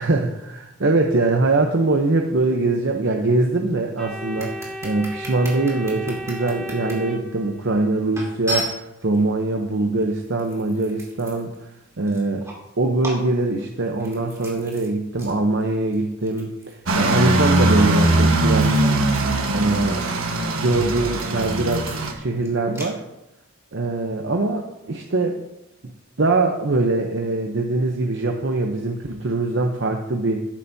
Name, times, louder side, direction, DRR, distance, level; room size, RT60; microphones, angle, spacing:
voice 1, 0.0-11.5 12.0-12.4 12.8-18.9 19.5-20.0 20.5-23.0 23.7-25.4 26.2-30.5, right 2 dB, 60° right, 2 dB, 0.8 m, -22 dB
Organ, 4.0-7.9, equal, ahead, 2.6 m, -35 dB
sound 1, 4.4-6.9 7.6-7.7 8.1-9.2 10.0-11.6 11.9-12.7 13.0-14.9 15.2-15.4 15.6-19.5 19.8-22.9, equal, 15° right, 2.5 m, -36 dB
sound 2, 16.9-22.1, right 1 dB, 75° right, 1.3 m, -20 dB
13.0 x 10.5 x 2.7 m, 0.89 s
head